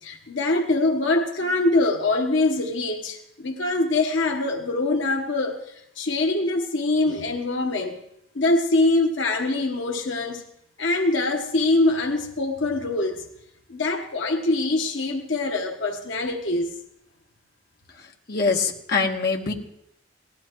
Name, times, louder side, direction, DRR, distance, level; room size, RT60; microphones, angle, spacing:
voice 1, 0.0-8.0 8.3-10.4 10.8-13.3 13.7-16.7, left 2 dB, 65° left, 3 dB, 1.2 m, -24 dB
voice 2, 18.3-19.5, left 4 dB, 50° left, 0 dB, 1.3 m, -23 dB
18.5 x 14.5 x 3.1 m, 0.76 s
head